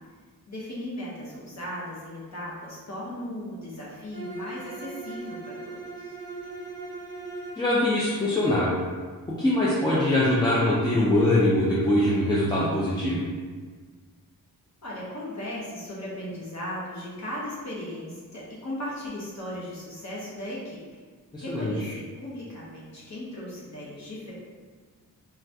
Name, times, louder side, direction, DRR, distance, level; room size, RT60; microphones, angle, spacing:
voice 1, 0.5-5.8 14.8-20.8 21.4-24.3, left 1 dB, 45° left, -6 dB, 0.8 m, -37 dB
Bowed string instrument, 4.1-7.7, right 3 dB, 30° right, 0.6 m, -39 dB
voice 2, 7.6-8.7 9.4-13.2 21.3-21.9, left 1 dB, 15° left, -8 dB, 0.3 m, -23 dB
2.6 x 2.3 x 3.3 m, 1.5 s
wide cardioid pair, 145°, 37 cm